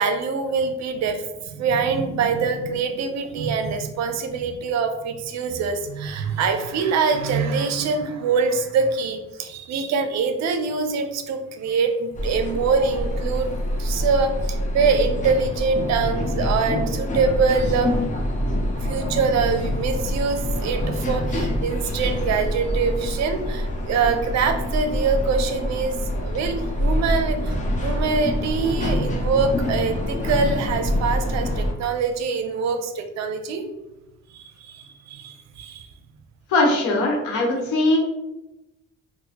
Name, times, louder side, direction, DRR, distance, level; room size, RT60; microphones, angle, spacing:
voice 1, 0.0-18.0 18.8-26.0 26.2-33.7 34.3-35.9, right 5 dB, 65° right, 7 dB, 0.5 m, -24 dB
sound 1, 12.1-31.7, left 1 dB, 25° left, 0.6 m, -26 dB
voice 2, 36.5-38.0, left 2 dB, 85° left, 0 dB, 1.0 m, -20 dB
4.1 x 2.1 x 2.8 m, 0.99 s
cardioid pair, 85°, 30 cm